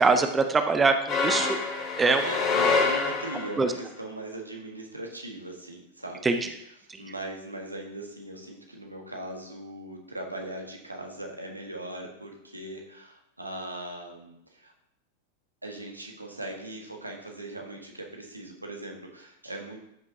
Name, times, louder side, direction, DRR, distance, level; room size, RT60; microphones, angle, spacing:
voice 1, 0.0-1.6 2.0-2.2 2.6-2.7 3.6-3.7 6.2-6.4, right 4 dB, 15° right, 7 dB, 0.7 m, -23 dB
sound 1, 1.1-3.7, left 4 dB, 35° left, 3.1 m, -26 dB
voice 2, 2.2-6.3 7.0-14.7 15.6-19.8, right 1 dB, 85° right, 2 dB, 1.4 m, -39 dB
13.0 x 6.1 x 2.8 m, 0.78 s
figure-of-eight pair, 90°, 0 cm